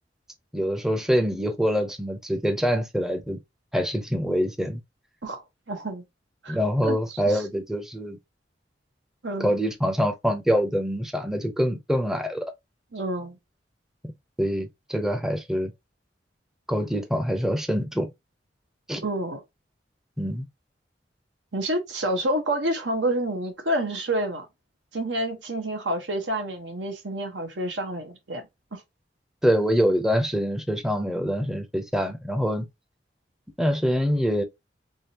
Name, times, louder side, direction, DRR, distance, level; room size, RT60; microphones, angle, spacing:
voice 1, 0.5-3.4 3.7-4.8 6.5-8.2 9.4-12.5 14.4-15.7 16.7-18.1 18.9-19.0 20.2-20.5 29.4-32.7 33.6-34.4, equal, 5° right, 0.5 m, -25 dB
voice 2, 5.2-6.0 6.4-7.0 7.3-7.4 9.2-9.6 12.9-13.4 19.0-19.4 21.5-24.5 24.9-28.8, right 1 dB, 90° right, 1.2 m, -29 dB
3.6 x 3.2 x 2.8 m
head